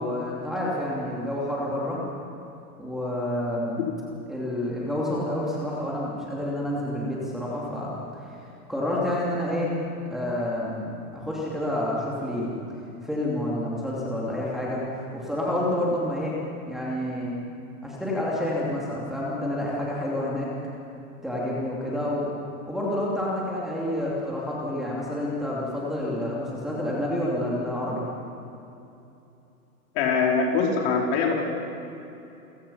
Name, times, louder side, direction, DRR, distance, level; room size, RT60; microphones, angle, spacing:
voice 1, 0.0-2.0 2.8-3.8 4.3-7.9 8.7-9.8 10.1-12.5 13.0-16.3 16.7-17.3 17.8-20.5 21.2-22.3 22.7-28.0, left 1 dB, ahead, -7 dB, 2.9 m, -28 dB
voice 2, 29.9-31.4, left 5 dB, 45° left, 0 dB, 4.3 m, -23 dB
29.0 x 17.0 x 5.7 m, 2.8 s
hypercardioid pair, 150°, 45 cm